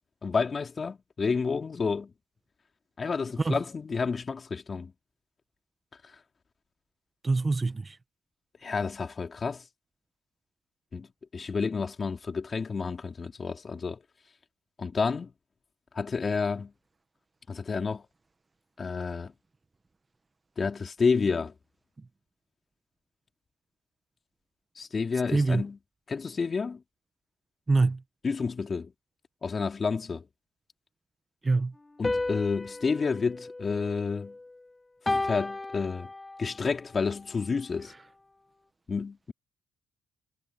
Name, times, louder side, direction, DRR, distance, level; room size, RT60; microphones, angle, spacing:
voice 1, 0.2-2.1 3.0-4.9 8.6-9.6 10.9-11.1 11.3-14.0 14.8-15.3 15.9-16.7 17.5-18.0 18.8-19.3 20.6-21.5 24.8-25.8 26.1-26.8 28.2-28.9 29.4-30.2 32.0-34.3 35.2-36.1 36.4-37.9 38.9-39.3, left 5 dB, 40° left, 3.5 m, -30 dB
voice 2, 7.2-8.0 25.3-25.6 27.7-28.0 31.4-31.7, right 3 dB, 25° right, 1.4 m, -25 dB
sound 1, 32.0-34.5 35.1-36.6, left 2 dB, 20° left, 2.6 m, -33 dB
supercardioid pair, 65°, 0 cm